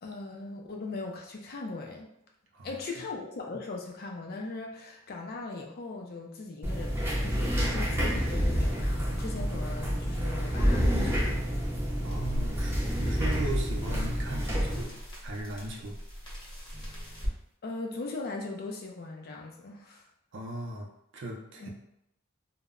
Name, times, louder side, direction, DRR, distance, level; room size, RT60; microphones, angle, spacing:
voice 1, 0.0-2.1 2.6-11.4 17.6-20.0 21.6-21.7, left 3 dB, 45° left, 1 dB, 0.4 m, -39 dB
voice 2, 2.5-2.9 12.0-12.7 13.0-14.9 15.2-16.0 20.3-21.7, right 2 dB, 60° right, 1 dB, 0.5 m, -38 dB
sound 1, 6.6-14.8, equal, 10° right, 0.6 m, -28 dB
sound 2, 12.0-17.4, equal, 20° left, 0.9 m, -40 dB
2.1 x 2.0 x 3.5 m, 0.80 s
head